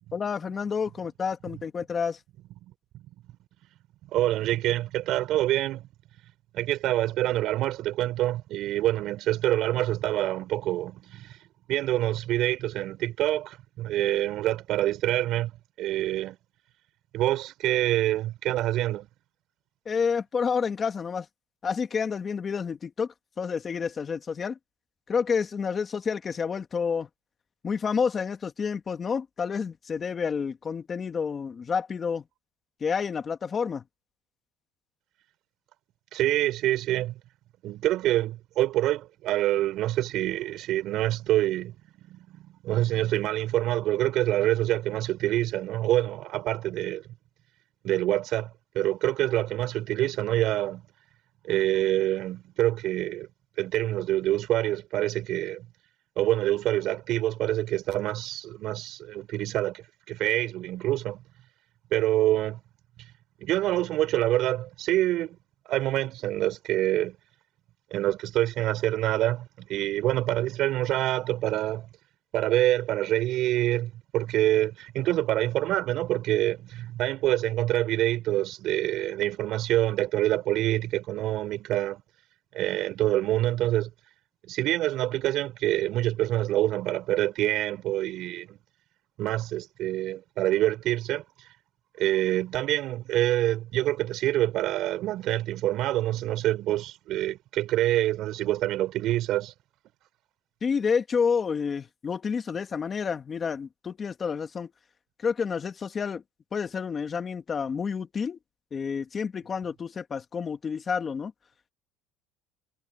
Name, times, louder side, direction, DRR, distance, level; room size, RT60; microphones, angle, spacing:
voice 1, 0.1-2.2 19.9-21.3 21.6-24.6 25.1-27.1 27.6-32.2 32.8-33.8 100.6-104.7 105.2-106.2 106.5-108.4 108.7-111.3, left 6 dB, 30° left, 2.2 m, -29 dB
voice 2, 4.1-5.9 6.5-11.4 11.7-15.5 15.8-16.4 17.1-19.1 36.1-37.2 37.6-41.8 42.1-47.0 47.8-50.8 51.4-53.3 53.6-55.7 56.2-61.2 61.9-62.6 63.4-65.4 65.7-67.2 67.9-71.9 72.3-82.0 82.5-83.9 84.4-88.6 89.2-91.2 92.0-99.5, right 14 dB, 60° right, 5.2 m, -26 dB
cardioid pair, 120°, 0 cm